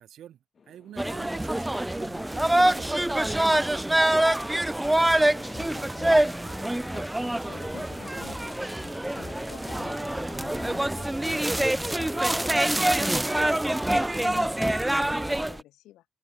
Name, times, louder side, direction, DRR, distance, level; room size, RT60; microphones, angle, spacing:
voice 1, 0.0-3.6, right 11 dB, 70° right, 4.2 m, -48 dB
sound 1, 0.6-14.8, left 5 dB, 40° left, 2.2 m, -51 dB
sound 2, 1.0-15.6, right 1 dB, 10° right, 0.3 m, -25 dB
voice 2, 5.0-7.1 7.4-8.6 9.1-13.0 13.5-16.1, left 15 dB, 90° left, 5.6 m, -51 dB
sound 3, 8.2-8.4 8.8-9.9 10.2-10.8 11.1-13.0, left 9 dB, 65° left, 3.3 m, -49 dB
open air
cardioid pair, 90°, 0 cm